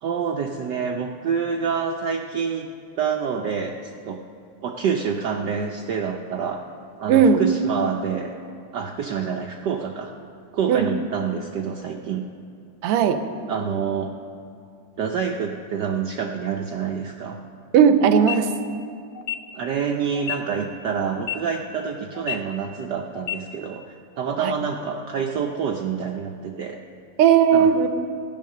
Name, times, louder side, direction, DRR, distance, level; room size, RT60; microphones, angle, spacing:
voice 1, 0.0-2.7 3.0-4.2 4.6-6.6 7.0-8.3 8.7-10.1 10.5-12.2 13.5-14.1 15.0-17.4 19.5-26.8 27.5-27.7, right 6 dB, 70° right, 2 dB, 1.1 m, -27 dB
voice 2, 7.1-7.4 10.7-10.9 12.8-13.2 17.7-18.5 24.4-24.5 27.2-27.9, right 7 dB, 90° right, 9 dB, 1.7 m, -16 dB
sound 1, 18.2-18.4 19.2-19.4 20.2-20.4 21.2-21.4 22.2-22.4 23.2-23.4, left 12 dB, 65° left, 1.1 m, -29 dB
14.0 x 10.0 x 6.6 m, 2.4 s
omnidirectional pair, 2.4 m